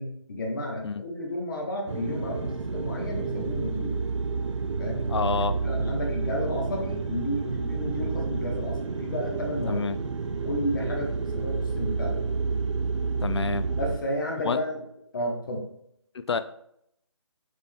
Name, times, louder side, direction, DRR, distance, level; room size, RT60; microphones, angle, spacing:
voice 1, 0.0-4.0 4.8-5.1 5.6-9.8 10.4-12.2 13.8-14.8 15.1-15.7, left 1 dB, 40° left, 0 dB, 1.1 m, -32 dB
sound 1, 1.9-14.0, right 4 dB, 75° right, 0.5 m, -30 dB
voice 2, 5.1-5.6 9.7-10.0 13.2-13.7 14.4-14.6 16.1-16.4, left 5 dB, 60° left, 12 dB, 0.4 m, -28 dB
6.6 x 3.5 x 2.2 m, 0.73 s
figure-of-eight pair, 165°, 16 cm